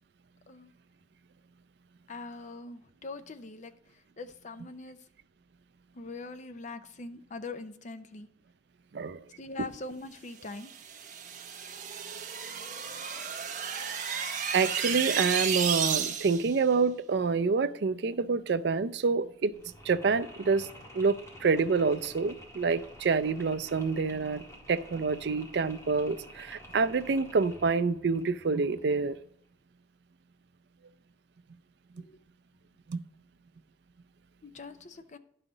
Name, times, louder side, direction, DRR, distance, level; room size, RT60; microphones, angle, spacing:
voice 1, 2.1-5.0 5.9-8.3 9.4-10.7 32.0-32.2 34.4-35.2, left 3 dB, 45° left, 0.6 m, -42 dB
sound 1, 10.6-16.5, right 7 dB, 45° right, 1.1 m, -33 dB
voice 2, 14.5-19.5 19.9-20.7 20.9-29.2 32.9-33.0, right 4 dB, 65° right, 0.4 m, -27 dB
Mechanisms, 19.5-29.3, equal, 15° left, 1.6 m, -50 dB
11.0 x 5.6 x 3.9 m
head